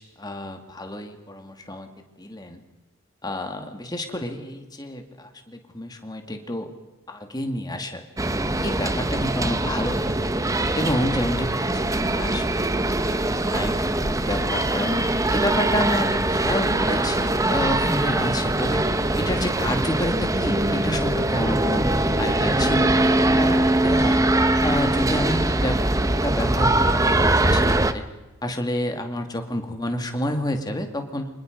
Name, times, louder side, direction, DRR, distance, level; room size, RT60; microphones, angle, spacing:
voice 1, 0.0-1.9 2.2-2.6 3.2-6.7 7.1-8.0 8.5-10.3 10.7-14.9 15.3-18.8 19.2-21.9 22.2-24.2 24.6-28.0 28.4-31.3, left 1 dB, 20° left, 5 dB, 2.3 m, -29 dB
sound 1, 8.2-27.9, right 1 dB, 15° right, 0.9 m, -22 dB
29.5 x 26.0 x 5.4 m, 1.1 s
head